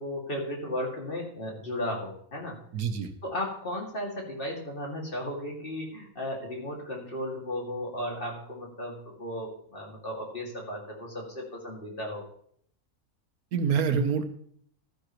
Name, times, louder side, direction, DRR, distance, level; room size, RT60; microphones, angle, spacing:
voice 1, 0.0-2.6 3.2-12.2, left 1 dB, 35° left, -1 dB, 2.4 m, -35 dB
voice 2, 2.7-3.1 13.5-14.3, right 6 dB, 75° right, 8 dB, 1.3 m, -26 dB
13.0 x 9.9 x 3.0 m, 0.64 s
omnidirectional pair, 1.6 m